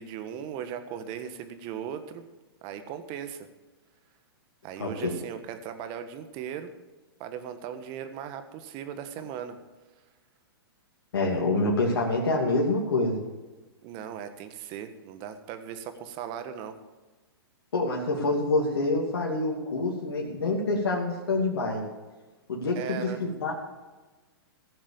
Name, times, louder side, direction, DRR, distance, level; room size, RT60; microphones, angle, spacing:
voice 1, 0.0-2.2 2.6-3.5 4.6-6.7 7.2-9.5 13.8-16.8 22.7-23.2, right 9 dB, 40° right, 9 dB, 1.6 m, -38 dB
voice 2, 4.8-5.1 11.1-13.2 17.7-21.8 22.5-23.5, left 2 dB, 75° left, -2 dB, 2.6 m, -26 dB
16.0 x 7.3 x 7.0 m, 1.2 s
hypercardioid pair, 125°, 13 cm